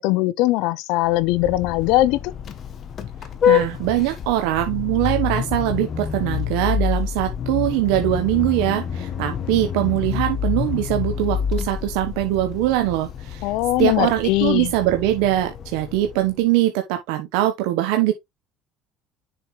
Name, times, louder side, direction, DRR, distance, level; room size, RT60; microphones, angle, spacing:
voice 1, 0.0-2.2 13.4-14.7, left 17 dB, 75° left, 0.6 m, -20 dB
Vehicle horn car horn honking, 1.0-16.4, left 8 dB, 40° left, 1.2 m, -27 dB
voice 2, 3.5-13.5 13.8-18.1, right 14 dB, 85° right, 1.0 m, -22 dB
6.9 x 5.3 x 3.1 m
supercardioid pair, 115°, 0 cm